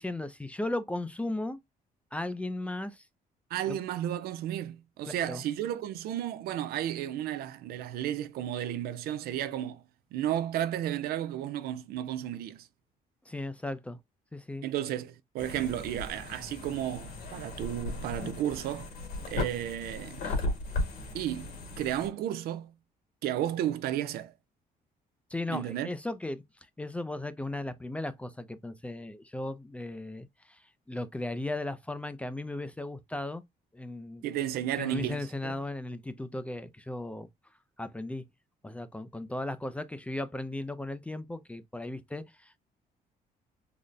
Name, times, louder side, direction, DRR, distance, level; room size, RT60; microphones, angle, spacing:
voice 1, 0.0-1.6 2.1-3.0 3.7-3.8 5.1-5.4 13.3-14.0 14.3-14.6 20.2-20.4 25.3-26.4 26.8-30.6 30.9-33.4 33.7-34.2 34.8-37.3 37.8-38.2 38.6-42.6, left 2 dB, 10° left, 0.4 m, -36 dB
voice 2, 3.5-9.8 10.1-12.7 14.6-18.9 19.3-20.2 21.1-22.7 23.2-24.3 25.5-25.9 34.2-35.5, right 11 dB, 85° right, 0.5 m, -33 dB
sound 1, 15.4-22.1, left 2 dB, 75° left, 1.6 m, -36 dB
3.9 x 2.0 x 3.2 m
cardioid pair, 130°, 16 cm